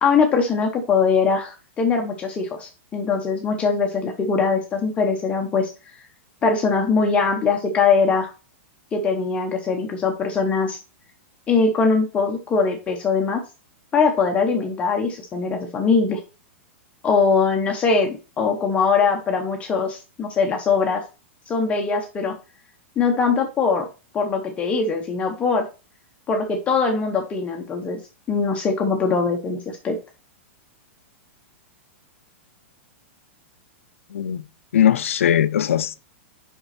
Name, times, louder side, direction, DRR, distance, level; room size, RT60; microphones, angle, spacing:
voice 1, 0.0-5.7 6.4-8.3 8.9-10.8 11.5-13.4 13.9-16.2 17.0-21.0 21.5-22.3 23.0-23.9 24.1-25.6 26.3-28.0 28.3-30.0, left 5 dB, 15° left, 1.1 m, -21 dB
voice 2, 34.1-34.4 34.7-36.0, left 10 dB, 90° left, 0.7 m, -19 dB
5.5 x 5.4 x 5.9 m
supercardioid pair, 150°, 7 cm